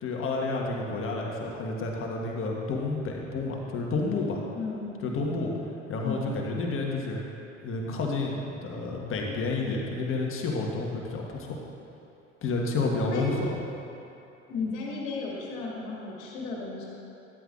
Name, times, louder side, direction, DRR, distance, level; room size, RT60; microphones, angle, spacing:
voice 1, 0.0-4.4 5.0-5.5 5.9-7.2 7.6-11.6 12.4-13.6, left 3 dB, 35° left, -1 dB, 1.5 m, -30 dB
voice 2, 4.5-5.1 6.0-6.4 13.1-13.4 14.5-16.9, left 4 dB, 55° left, -3 dB, 2.1 m, -34 dB
12.5 x 10.0 x 2.5 m, 2.8 s
figure-of-eight pair, 65°, 37 cm